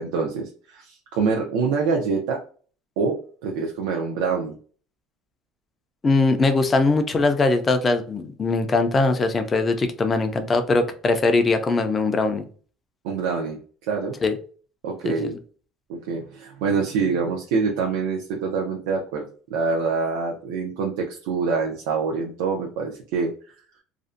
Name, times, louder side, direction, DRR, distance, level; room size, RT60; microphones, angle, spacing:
voice 1, 0.0-2.4 3.0-4.6 13.0-14.2 14.8-15.3 15.9-23.3, right 5 dB, 85° right, 0 dB, 0.5 m, -25 dB
voice 2, 6.0-12.4 14.2-14.3 15.0-15.3, left 3 dB, 15° left, 7 dB, 0.3 m, -21 dB
2.4 x 2.1 x 2.5 m, 0.42 s
cardioid pair, 170°, 0 cm